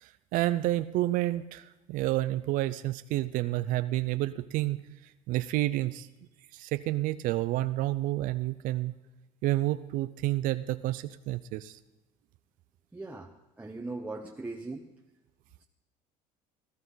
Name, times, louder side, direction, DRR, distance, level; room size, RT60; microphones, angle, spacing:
voice 1, 0.0-4.8 5.3-6.1 6.5-8.9 9.4-11.8, right 16 dB, 65° right, 13 dB, 0.5 m, -29 dB
voice 2, 12.9-13.3 13.6-14.9, right 2 dB, 10° right, 0 dB, 1.2 m, -39 dB
19.5 x 13.0 x 4.0 m, 1.0 s
supercardioid pair, 100°, 15 cm